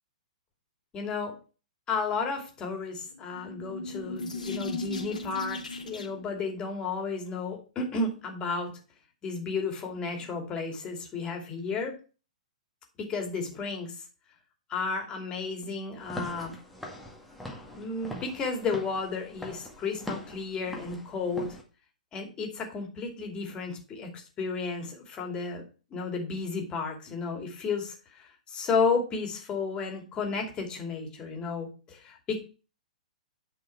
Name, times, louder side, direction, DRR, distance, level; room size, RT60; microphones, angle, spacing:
voice 1, 0.9-1.3 1.9-8.8 9.2-12.0 13.0-13.9 14.7-16.6 17.7-21.6 22.1-25.6 25.9-32.4, left 4 dB, 20° left, 2 dB, 2.8 m, -32 dB
sound 1, 3.1-6.3, left 2 dB, 75° left, 2.1 m, -37 dB
Walk footsteps / Siren, 16.0-21.6, left 1 dB, ahead, 1.9 m, -42 dB
9.5 x 5.8 x 4.7 m, 0.34 s
figure-of-eight pair, 115°, 4 cm